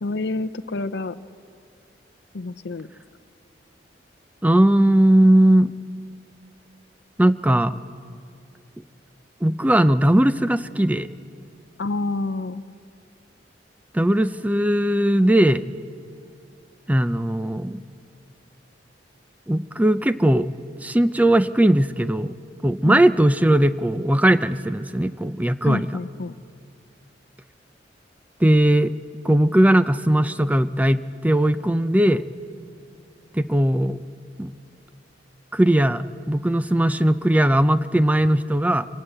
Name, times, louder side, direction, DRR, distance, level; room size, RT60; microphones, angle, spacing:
voice 1, 0.0-1.2 2.3-2.9 11.8-12.6 22.8-23.0 25.6-26.3, left 2 dB, 65° left, 11 dB, 0.6 m, -28 dB
voice 2, 4.4-5.7 7.2-7.8 9.4-11.1 13.9-15.7 16.9-17.8 19.5-20.5 20.8-22.4 22.6-25.9 28.4-28.9 29.2-32.3 33.3-34.0 34.4-34.5 35.5-38.9, right 1 dB, 10° right, 13 dB, 0.5 m, -18 dB
24.5 x 18.0 x 7.8 m, 2.3 s
head